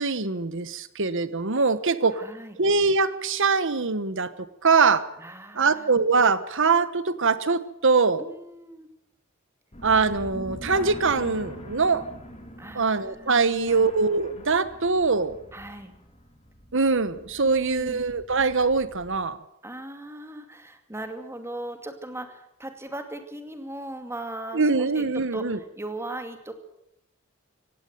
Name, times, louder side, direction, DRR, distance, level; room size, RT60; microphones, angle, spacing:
voice 1, 0.0-2.2 2.6-5.0 5.5-8.2 9.8-12.1 12.7-15.4 16.7-19.4 24.5-25.6, right 4 dB, 60° right, 14 dB, 1.3 m, -23 dB
voice 2, 2.1-2.6 5.2-5.9 8.2-8.9 12.6-13.9 15.5-15.9 17.4-18.1 19.6-26.5, right 1 dB, 10° right, 7 dB, 2.4 m, -38 dB
sound 1, 9.7-19.2, left 1 dB, 30° left, 3.1 m, -44 dB
17.5 x 16.5 x 9.4 m, 0.81 s
head